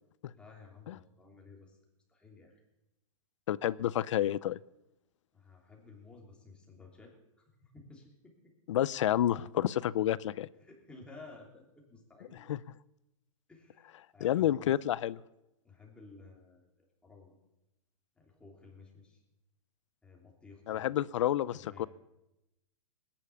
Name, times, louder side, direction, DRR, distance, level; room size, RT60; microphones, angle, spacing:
voice 1, 0.3-1.8 2.1-2.6 5.3-8.5 10.6-12.4 13.5-14.8 15.6-17.3 18.1-19.2 20.0-21.0 21.5-21.9, left 3 dB, 5° left, -1 dB, 3.1 m, -54 dB
voice 2, 3.5-4.6 8.7-10.5 12.5-12.6 14.2-15.2 20.7-21.9, left 12 dB, 65° left, 20 dB, 0.6 m, -29 dB
19.5 x 10.5 x 7.1 m, 0.93 s
hypercardioid pair, 165°, 17 cm